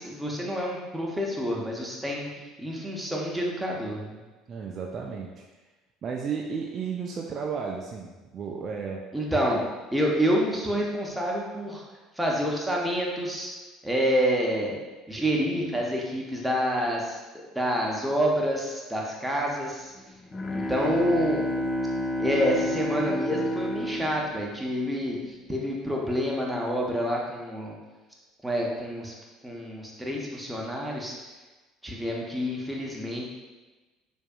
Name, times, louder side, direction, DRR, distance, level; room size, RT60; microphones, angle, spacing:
voice 1, 0.0-4.2 9.1-9.6 9.9-11.8 12.2-13.5 13.8-14.8 15.1-19.9 20.5-21.4 22.2-27.8 28.4-29.1 29.4-31.1 31.8-33.3, equal, 5° right, -3 dB, 0.9 m, -28 dB
voice 2, 4.5-5.4 6.0-9.0, right 6 dB, 40° right, 0 dB, 0.4 m, -33 dB
Bowed string instrument, 20.0-25.5, left 1 dB, 25° left, 0.4 m, -30 dB
6.5 x 2.7 x 2.3 m, 1.2 s
figure-of-eight pair, 60°, 0 cm